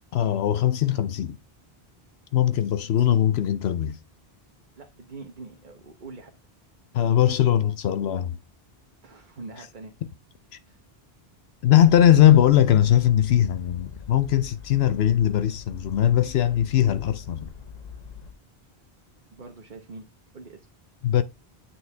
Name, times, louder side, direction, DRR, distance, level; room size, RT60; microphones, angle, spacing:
voice 1, 0.1-1.4 2.3-4.0 6.9-8.4 11.6-17.5 21.0-21.2, left 11 dB, 85° left, 0.9 m, -20 dB
voice 2, 2.8-3.2 4.8-6.3 9.0-9.9 10.7-10.8 19.3-20.1 20.3-20.7, right 3 dB, 50° right, 1.2 m, -44 dB
sound 1, 11.7-18.3, left 6 dB, 40° left, 1.1 m, -43 dB
8.9 x 4.7 x 3.4 m
omnidirectional pair, 1.0 m